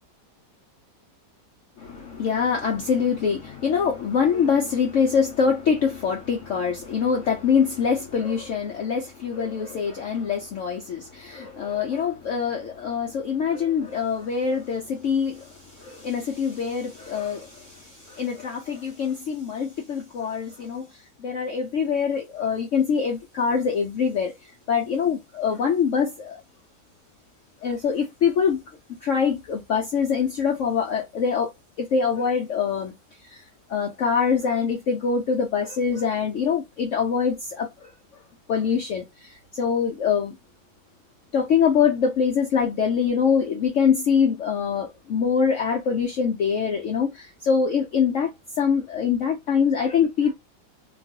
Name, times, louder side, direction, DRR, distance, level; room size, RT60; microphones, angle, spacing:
voice 1, 1.8-26.4 27.6-28.6 29.0-31.5 31.8-32.9 33.2-37.9 38.5-40.3 41.3-50.3, left 6 dB, 75° left, 0.7 m, -24 dB
2.9 x 2.3 x 2.7 m
omnidirectional pair, 1.9 m